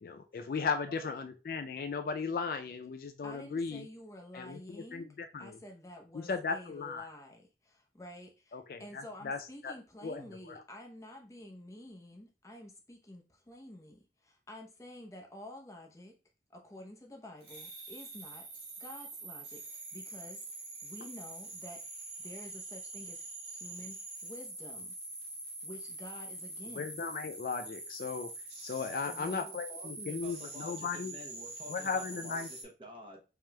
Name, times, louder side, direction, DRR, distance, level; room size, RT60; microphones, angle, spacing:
voice 1, 0.0-3.9 4.3-5.6 6.1-7.1 8.5-9.7 10.0-10.6 26.7-28.3 28.6-31.2 31.7-32.5, left 5 dB, 50° left, 8 dB, 0.3 m, -37 dB
voice 2, 3.2-5.1 5.4-16.2 16.5-18.5 18.8-21.8 22.2-24.9 25.6-26.9, left 1 dB, 20° left, 2 dB, 0.6 m, -50 dB
sound 1, 17.4-32.6, right 2 dB, 65° right, 1.5 m, -45 dB
voice 3, 29.1-33.2, right 1 dB, 30° right, 1 dB, 0.8 m, -49 dB
4.8 x 3.0 x 2.2 m, 0.31 s
head